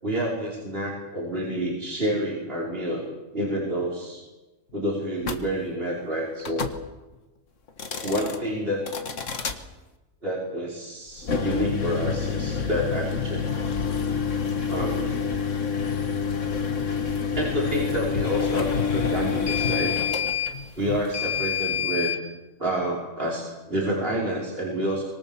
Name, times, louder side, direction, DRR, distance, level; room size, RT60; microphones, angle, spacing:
voice 1, 0.0-3.1 3.3-4.2 4.7-6.7 8.0-8.8 10.2-13.4 14.7-15.2 17.3-19.9 20.8-22.2 22.6-25.0, right 1 dB, 45° right, -3 dB, 5.3 m, -28 dB
sound 1, 5.2-5.4 6.4-6.8 7.7-8.4 8.9-9.6 11.2-22.2, left 6 dB, 70° left, 1.9 m, -27 dB
25.0 x 23.5 x 7.2 m, 1.1 s
omnidirectional pair, 1.3 m